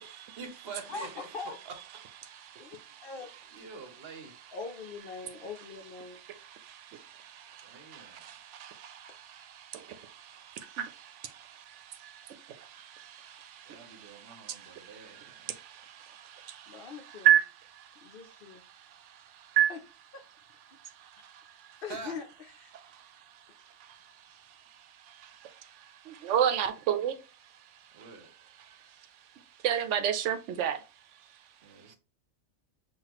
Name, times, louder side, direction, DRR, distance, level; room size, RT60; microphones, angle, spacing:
voice 1, 0.0-1.3 2.8-2.9 3.5-4.3 7.6-8.3 13.7-15.5 21.9-22.2 27.9-28.3 31.6-31.9, right 4 dB, 55° right, 1.1 m, -46 dB
voice 2, 0.9-1.5 2.6-3.3 4.5-6.2 16.4-17.3 18.0-18.6 19.7-19.8 20.1-20.3 21.8-22.7, left 5 dB, 60° left, 0.6 m, -42 dB
voice 3, 26.2-27.2 29.6-30.8, right 10 dB, 80° right, 0.9 m, -24 dB
5.7 x 2.4 x 2.9 m
omnidirectional pair, 1.2 m